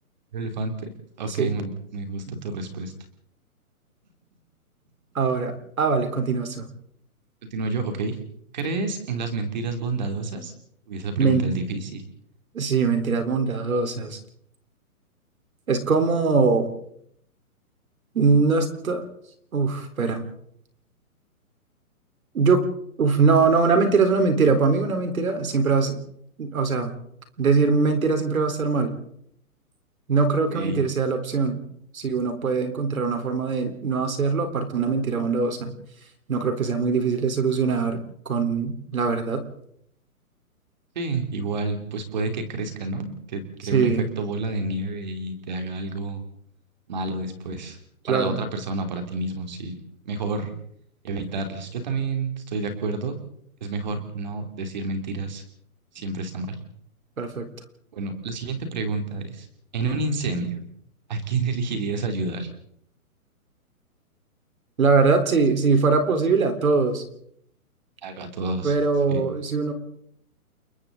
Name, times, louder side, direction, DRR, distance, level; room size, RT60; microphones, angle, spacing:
voice 1, 0.3-0.9 1.2-2.9 7.5-8.2 8.5-10.5 10.9-12.1 30.5-30.8 40.9-43.9 44.2-46.2 46.9-47.8 48.1-49.8 50.0-50.5 51.0-53.1 53.6-55.4 55.9-56.6 57.9-59.5 59.7-60.6 61.1-62.5 68.0-68.7 69.1-69.2, right 3 dB, 30° right, 6 dB, 2.9 m, -29 dB
voice 2, 5.1-6.7 11.2-11.5 12.5-14.2 15.7-16.7 18.1-19.0 19.5-20.2 22.3-22.6 23.0-26.0 26.4-26.9 27.4-28.9 30.1-31.6 31.9-35.8 36.3-39.4 43.7-44.1 48.0-48.4 57.2-57.5 64.8-67.0 68.6-69.7, right 4 dB, 70° right, 7 dB, 4.0 m, -22 dB
29.5 x 23.0 x 3.9 m, 0.70 s
hypercardioid pair, 180°, 44 cm